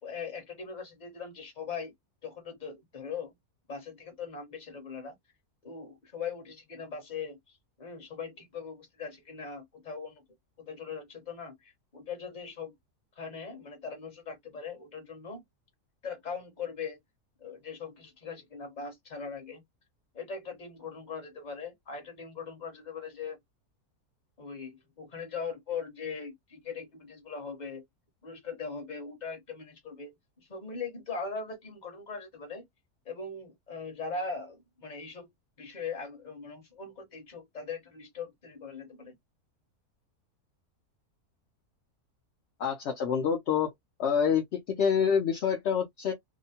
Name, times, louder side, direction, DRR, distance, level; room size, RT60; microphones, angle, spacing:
voice 1, 0.0-1.9 2.2-3.3 3.7-5.1 5.6-7.4 7.8-10.2 10.6-12.7 13.2-15.4 16.0-17.0 17.4-19.6 20.1-23.4 24.4-27.8 28.2-32.6 33.0-35.3 35.6-39.1, left 5 dB, 30° left, 1.1 m, -40 dB
voice 2, 42.6-43.7 44.0-46.1, left 7 dB, 60° left, 0.7 m, -27 dB
2.8 x 2.1 x 2.7 m
omnidirectional pair, 1.6 m